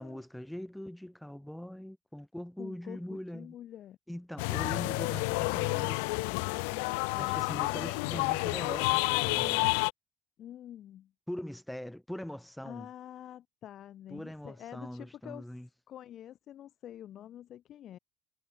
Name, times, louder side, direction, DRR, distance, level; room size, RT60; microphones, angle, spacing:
voice 1, 0.0-3.6 4.1-6.0 7.2-9.8 11.3-12.9 14.1-15.7, left 1 dB, 5° left, 5.7 m, -42 dB
voice 2, 2.6-4.0 5.1-8.3 10.4-11.1 12.6-15.5 15.9-18.0, left 11 dB, 50° left, 7.7 m, -47 dB
sound 1, 4.4-9.9, left 33 dB, 90° left, 1.2 m, -30 dB
supercardioid pair, 105°, 0 cm